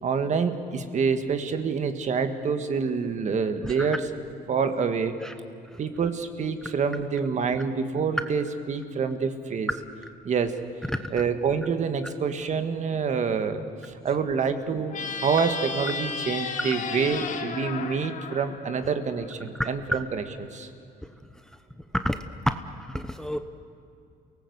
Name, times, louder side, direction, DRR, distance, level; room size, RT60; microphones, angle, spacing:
voice 1, 0.0-4.0 4.5-5.2 5.8-9.7 10.2-10.6 11.1-14.9 15.2-20.2 20.5-20.7, right 5 dB, 45° right, 8 dB, 1.7 m, -27 dB
sound 1, 14.9-19.3, left 5 dB, 50° left, 1.8 m, -34 dB
voice 2, 19.6-20.0 21.9-22.5 22.9-23.4, equal, 5° left, 8 dB, 0.9 m, -29 dB
29.0 x 18.5 x 8.1 m, 2.5 s
cardioid pair, 110°, 17 cm